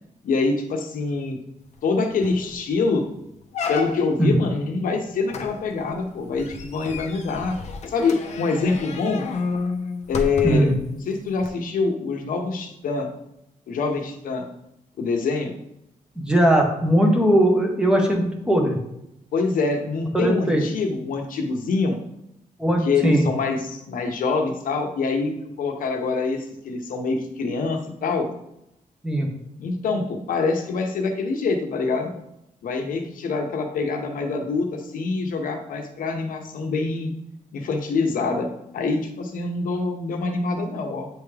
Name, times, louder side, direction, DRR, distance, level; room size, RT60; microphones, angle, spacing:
voice 1, 0.2-1.4 1.8-3.0 3.7-7.6 7.9-9.2 10.1-13.1 13.7-14.5 15.0-15.5 19.3-22.0 22.8-28.3 29.6-32.1 32.6-37.1 37.5-41.1, left 4 dB, 80° left, 4 dB, 0.9 m, -25 dB
sound 1, 1.8-1.9 2.2-2.5 2.9-3.0 3.5-4.3 5.3-10.8 11.4-11.5, left 4 dB, 55° left, 0.7 m, -31 dB
voice 2, 16.2-18.8 20.1-20.6 22.6-23.2 29.0-29.3, right 1 dB, 5° right, 1 dB, 1.0 m, -19 dB
8.4 x 3.5 x 3.3 m, 0.83 s
wide cardioid pair, 180°, 14 cm